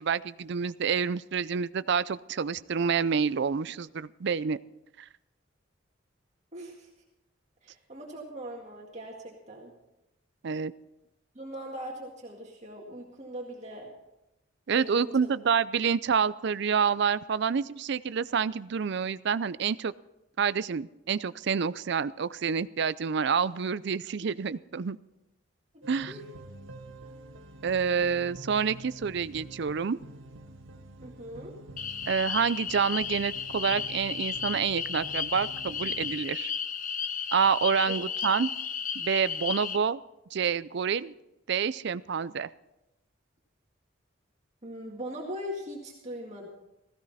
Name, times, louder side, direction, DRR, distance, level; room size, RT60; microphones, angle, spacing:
voice 1, 0.0-4.6 10.4-10.7 14.7-19.9 20.4-25.0 25.9-26.1 27.6-30.0 32.1-36.5 37.3-38.5 38.9-40.0 40.3-41.1 41.5-42.5, right 6 dB, 55° right, 17 dB, 0.4 m, -28 dB
voice 2, 6.5-6.9 7.6-9.7 11.4-13.9 14.7-15.3 24.2-24.3 25.7-26.2 31.0-31.6 37.8-37.9 44.6-46.5, equal, 35° right, -1 dB, 2.0 m, -40 dB
sound 1, 25.8-36.2, right 1 dB, 75° right, 1.5 m, -47 dB
sound 2, 31.8-39.8, left 7 dB, 40° left, 0.7 m, -34 dB
16.5 x 15.5 x 4.2 m, 0.92 s
head